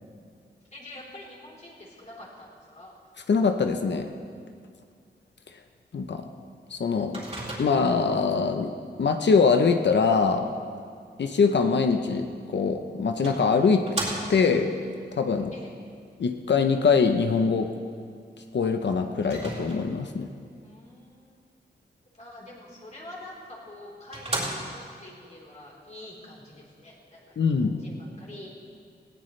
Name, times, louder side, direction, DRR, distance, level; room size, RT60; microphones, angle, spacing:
voice 1, 0.7-3.0 15.5-15.7 20.6-21.4 22.1-28.5, left 1 dB, 40° left, -4 dB, 3.9 m, -46 dB
voice 2, 3.3-4.1 5.9-6.3 6.7-7.2 7.6-8.7 9.0-10.5 11.2-12.3 12.5-13.9 14.3-14.7 15.1-15.5 16.2-17.7 18.5-20.3 27.4-27.8, left 5 dB, 80° left, 5 dB, 0.8 m, -23 dB
Microwave oven, 7.1-8.0 12.4-12.5 13.2-14.6 19.2-20.1 23.2-23.3 23.8-23.9 24.1-25.0, right 2 dB, 35° right, 3.8 m, -34 dB
18.5 x 17.0 x 3.3 m, 2.2 s
wide cardioid pair, 110°, 18 cm